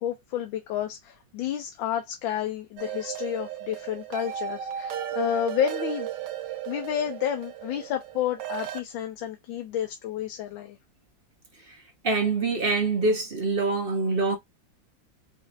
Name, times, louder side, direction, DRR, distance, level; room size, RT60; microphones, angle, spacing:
voice 1, 0.0-6.1 6.7-10.8, left 10 dB, 85° left, 1.5 m, -30 dB
sound 1, 2.8-8.8, right 10 dB, 70° right, 1.2 m, -35 dB
voice 2, 12.0-14.4, right 3 dB, 50° right, 0.7 m, -25 dB
5.1 x 2.6 x 2.5 m
omnidirectional pair, 2.1 m